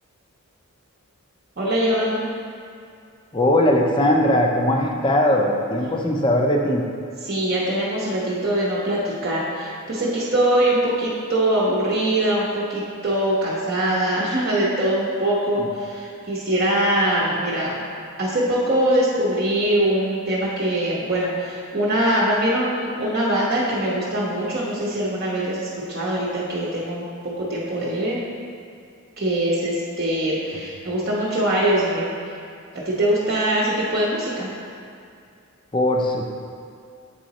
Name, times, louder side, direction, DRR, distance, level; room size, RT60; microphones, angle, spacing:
voice 1, 1.6-2.2 7.2-17.8 18.2-28.2 29.2-32.1 32.7-34.5, right 1 dB, 45° right, -7 dB, 0.8 m, -22 dB
voice 2, 3.3-6.8 15.6-15.7 30.5-30.6 35.7-36.3, left 1 dB, 25° left, 0 dB, 0.5 m, -19 dB
7.7 x 3.8 x 4.1 m, 2.4 s
head